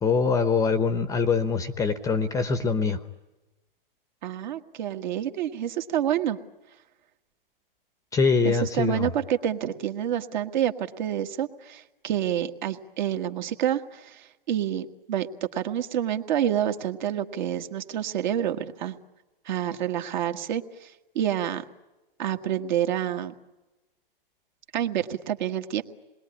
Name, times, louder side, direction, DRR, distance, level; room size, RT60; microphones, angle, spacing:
voice 1, 0.0-3.0 8.1-9.1, left 5 dB, 10° left, 12 dB, 0.9 m, -23 dB
voice 2, 4.2-6.4 8.4-15.3 15.5-19.0 19.4-21.6 22.2-23.3 24.7-25.8, right 10 dB, 50° right, 7 dB, 1.7 m, -28 dB
27.0 x 21.0 x 9.8 m, 1.1 s
hypercardioid pair, 135°, 29 cm